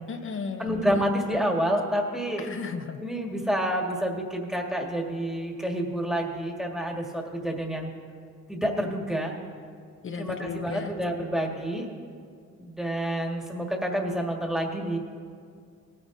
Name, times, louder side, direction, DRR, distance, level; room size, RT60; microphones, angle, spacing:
voice 1, 0.1-0.9 2.4-3.0 10.0-10.9, left 5 dB, 45° left, 6 dB, 0.8 m, -34 dB
voice 2, 0.6-2.5 3.0-7.9 8.5-9.4 10.2-11.9 12.6-15.0, equal, ahead, 1 dB, 1.7 m, -28 dB
18.5 x 9.8 x 2.7 m, 2.2 s
cardioid pair, 90°, 30 cm